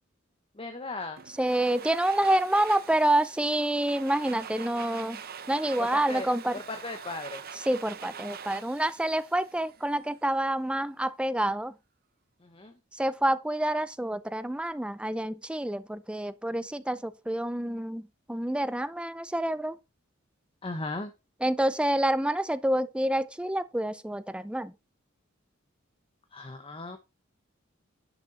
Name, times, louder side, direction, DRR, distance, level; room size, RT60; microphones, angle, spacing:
voice 1, 0.5-1.2 5.8-7.4 12.4-12.7 20.6-21.1 26.3-27.0, left 2 dB, 25° left, 1.0 m, -37 dB
Domestic sounds home sounds, 1.2-10.1, right 7 dB, 50° right, 0.8 m, -44 dB
voice 2, 1.4-5.2 5.5-6.6 7.7-11.7 12.9-19.8 21.4-24.7, right 1 dB, 5° right, 0.5 m, -28 dB
10.5 x 6.0 x 4.1 m
head